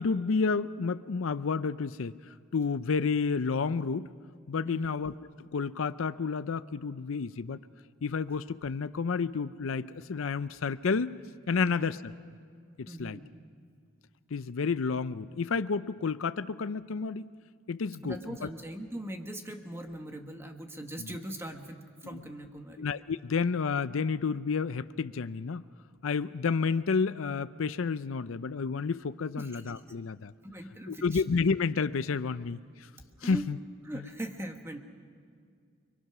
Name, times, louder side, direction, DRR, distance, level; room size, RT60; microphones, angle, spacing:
voice 1, 0.0-4.1 4.5-5.1 5.5-7.6 8.0-11.1 11.5-12.1 12.8-13.2 14.3-17.3 17.7-18.5 21.0-21.1 22.1-22.2 22.8-25.6 26.0-30.3 30.9-32.9 33.2-33.6, left 5 dB, 70° left, 14 dB, 0.5 m, -30 dB
voice 2, 4.6-5.0 11.6-11.9 12.9-13.3 18.0-22.9 29.4-29.7 30.4-31.2 33.2-33.4 33.9-34.8, right 1 dB, 10° right, 4 dB, 1.5 m, -41 dB
29.5 x 22.5 x 6.0 m, 2.2 s
head